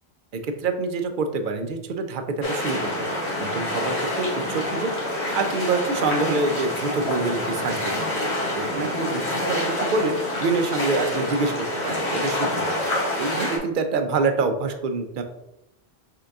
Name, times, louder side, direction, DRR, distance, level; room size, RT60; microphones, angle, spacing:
voice 1, 0.3-2.8 3.1-4.9 5.3-7.8 8.1-8.3 8.5-9.2 9.5-12.6 13.2-15.2, right 3 dB, 60° right, 7 dB, 0.6 m, -26 dB
sound 1, 2.4-13.6, left 1 dB, 85° left, 1.4 m, -27 dB
3.8 x 3.7 x 3.4 m, 0.89 s
omnidirectional pair, 1.1 m